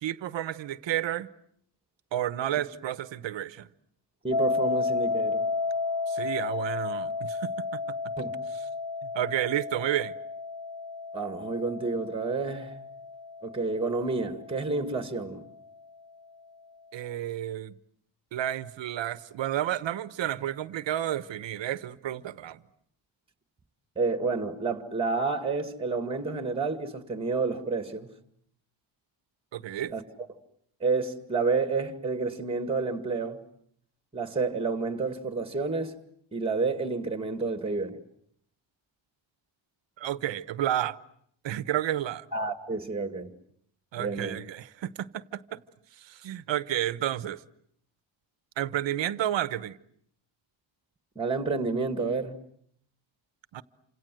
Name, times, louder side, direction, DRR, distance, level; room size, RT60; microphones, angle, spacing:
voice 1, 0.0-1.3 2.1-3.7 6.1-7.7 9.0-10.1 16.9-17.7 18.3-22.6 29.5-29.9 40.0-41.0 41.4-42.2 43.9-45.6 46.0-47.4 48.6-49.8 53.5-53.6, right 12 dB, 65° right, 1.1 m, -31 dB
voice 2, 4.2-5.5 8.2-8.4 11.1-12.8 13.4-15.4 24.0-28.1 29.9-30.0 30.8-33.4 34.1-35.9 36.3-38.0 42.3-43.3 44.0-44.4 51.2-52.4, right 4 dB, 10° right, 2.1 m, -29 dB
sound 1, 4.3-15.2, left 3 dB, 45° left, 1.2 m, -32 dB
28.5 x 27.0 x 7.7 m
cardioid pair, 150°, 47 cm